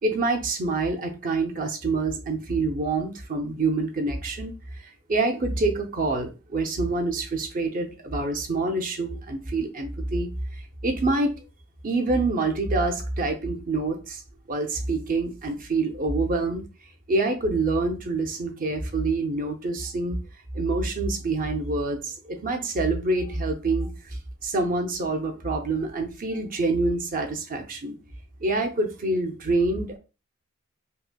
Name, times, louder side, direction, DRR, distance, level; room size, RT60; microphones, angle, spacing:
voice 1, 0.0-4.8 5.1-10.3 10.8-11.3 11.8-14.2 14.5-16.6 17.1-20.2 20.5-23.9 24.4-28.0 28.4-30.0, right 3 dB, 40° right, 5 dB, 0.6 m, -26 dB
5.2 x 2.1 x 2.3 m, 0.32 s
head